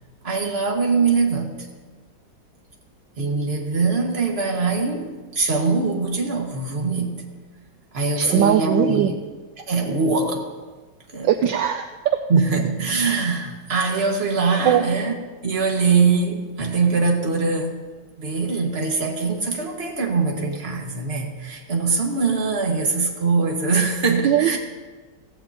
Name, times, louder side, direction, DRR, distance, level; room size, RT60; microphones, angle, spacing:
voice 1, 0.2-1.7 3.2-7.2 7.9-9.1 9.7-10.5 11.1-11.3 12.3-15.2 15.4-17.8 18.2-24.6, right 4 dB, 30° right, 0 dB, 1.9 m, -22 dB
voice 2, 8.2-9.1 11.2-12.2 14.6-14.8 24.2-24.6, right 10 dB, 75° right, 7 dB, 1.2 m, -20 dB
16.0 x 15.5 x 2.9 m, 1.3 s
omnidirectional pair, 2.2 m